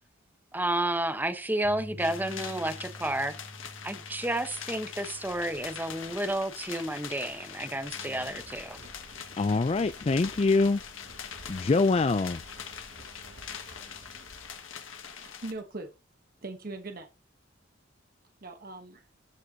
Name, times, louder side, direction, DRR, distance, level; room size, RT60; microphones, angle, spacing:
voice 1, 0.5-3.3 3.8-8.8, right 1 dB, 10° right, 1.0 m, -31 dB
Bass guitar, 1.6-7.9, equal, 80° right, 2.0 m, -49 dB
sound 1, 2.0-15.5, left 7 dB, 90° left, 1.6 m, -43 dB
Engine, 4.7-15.6, right 1 dB, 65° right, 1.6 m, -53 dB
voice 2, 9.4-10.8 11.5-12.4, left 3 dB, 30° left, 0.4 m, -24 dB
voice 3, 15.1-15.9 16.4-17.1 18.4-19.1, right 2 dB, 50° right, 1.1 m, -40 dB
14.0 x 5.4 x 2.8 m
head